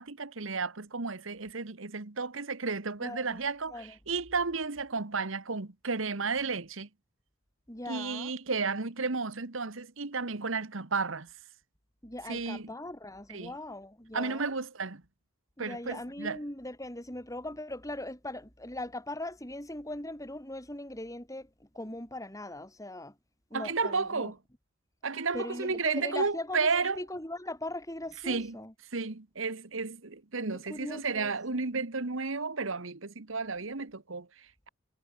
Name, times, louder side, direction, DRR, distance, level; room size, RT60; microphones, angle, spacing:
voice 1, 0.0-6.9 7.9-11.3 12.3-12.7 13.3-13.5 14.1-15.0 15.6-16.4 23.5-24.4 25.0-27.0 28.2-28.5 28.9-34.7, right 4 dB, 65° right, 1.4 m, -33 dB
voice 2, 3.0-3.4 3.7-4.0 7.7-8.3 12.0-14.5 15.6-23.2 23.5-24.3 25.3-28.7 30.5-31.6, left 1 dB, 15° left, 5.0 m, -40 dB
head